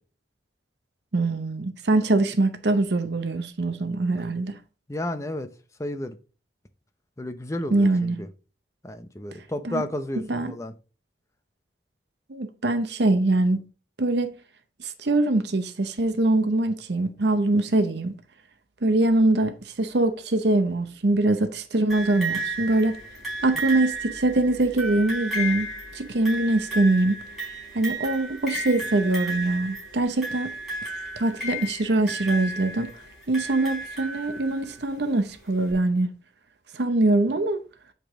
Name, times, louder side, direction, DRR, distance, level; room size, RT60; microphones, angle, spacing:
voice 1, 1.1-4.6 7.7-8.2 9.6-9.8 10.3-10.5 12.3-13.6 14.0-14.3 14.8-18.1 18.8-23.0 23.4-27.2 27.7-30.5 31.2-32.9 33.3-36.1 36.7-37.6, right 2 dB, 65° right, 0.7 m, -23 dB
voice 2, 4.9-5.5 5.8-6.2 7.2-8.3 8.8-10.7, left 1 dB, 15° left, 0.6 m, -32 dB
sound 1, 21.9-34.7 35.7-35.8, right 1 dB, ahead, 4.2 m, -33 dB
8.0 x 5.2 x 3.6 m
head